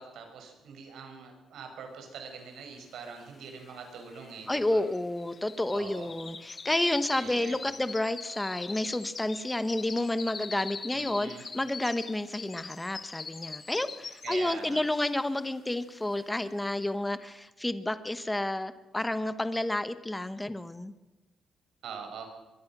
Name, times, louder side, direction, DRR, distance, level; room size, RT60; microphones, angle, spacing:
voice 1, 0.0-4.8 5.7-6.1 7.2-7.6 10.9-11.4 14.2-14.8 21.8-22.3, right 5 dB, 75° right, 4 dB, 5.9 m, -43 dB
sound 1, 2.9-3.0 3.2-14.7 15.1-15.4 15.8-15.9, left 5 dB, 30° left, 1.1 m, -43 dB
voice 2, 4.5-20.9, left 1 dB, 10° left, 12 dB, 1.1 m, -30 dB
25.0 x 22.5 x 6.1 m, 1.1 s
cardioid pair, 175°, 0 cm